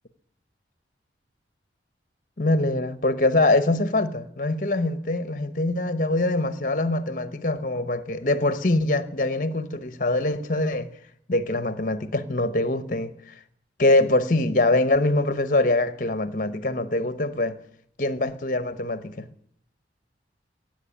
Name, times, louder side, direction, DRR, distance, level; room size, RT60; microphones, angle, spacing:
voice 1, 2.4-10.9 11.3-13.1 13.8-17.6 18.0-19.3, left 2 dB, 45° left, 0.9 m, -23 dB
17.5 x 7.7 x 10.0 m
head